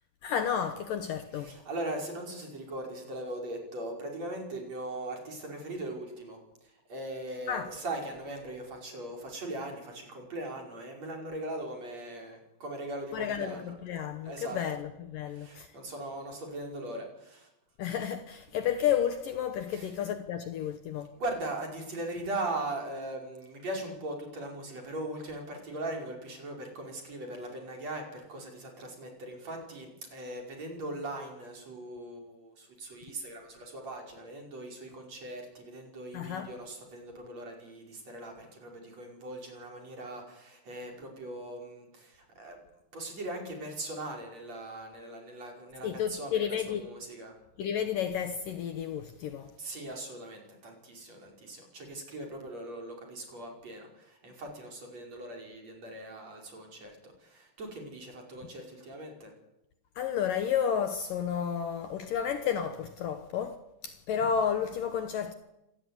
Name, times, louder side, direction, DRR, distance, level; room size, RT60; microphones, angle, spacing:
voice 1, 0.2-1.6 7.5-7.7 13.1-15.7 17.8-21.1 36.1-36.5 45.8-46.9 47.6-49.5 60.0-63.6 63.8-65.3, left 8 dB, 65° left, 2.5 m, -31 dB
voice 2, 1.4-13.7 14.2-14.6 15.3-17.5 19.7-19.9 21.1-42.6 42.9-47.4 49.6-59.3, right 1 dB, 40° right, 6.1 m, -40 dB
26.0 x 18.0 x 9.7 m
omnidirectional pair, 4.8 m